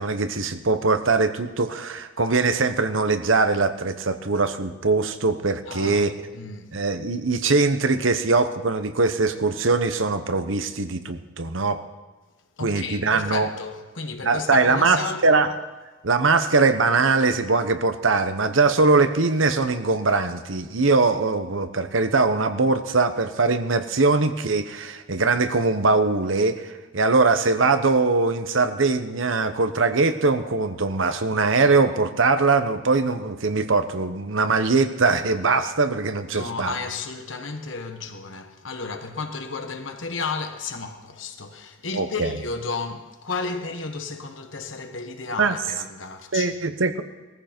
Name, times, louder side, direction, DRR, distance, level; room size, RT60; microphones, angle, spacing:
voice 1, 0.0-6.1 6.7-11.8 12.6-13.5 14.2-15.5 16.0-36.7 41.9-42.3 45.4-45.5 46.3-47.0, right 3 dB, 80° right, 1.1 m, -21 dB
voice 2, 5.7-6.7 12.6-15.3 36.3-46.6, left 4 dB, 70° left, 1.6 m, -33 dB
18.5 x 14.5 x 4.5 m
head